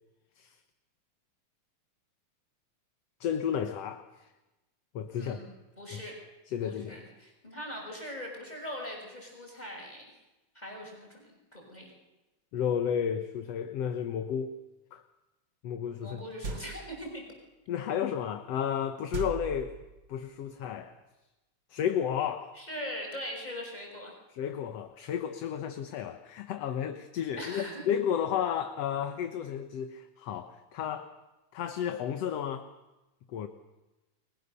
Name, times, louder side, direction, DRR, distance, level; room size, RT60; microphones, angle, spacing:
voice 1, 3.2-4.3 4.9-5.4 5.9-6.0 6.5-7.0 12.5-14.6 14.9-15.0 15.6-16.2 17.7-19.7 20.1-21.0 21.7-22.6 24.4-31.1 31.5-32.7 33.3-33.5, left 8 dB, 60° left, 8 dB, 2.1 m, -32 dB
voice 2, 5.1-6.2 6.6-10.0 10.5-11.9 16.0-17.2 22.5-24.1 27.4-27.9, equal, 15° left, 0 dB, 6.6 m, -41 dB
sound 1, 16.4-17.1 19.1-20.1, right 3 dB, 40° right, 2.5 m, -38 dB
30.0 x 23.0 x 6.9 m, 1.0 s
omnidirectional pair, 3.4 m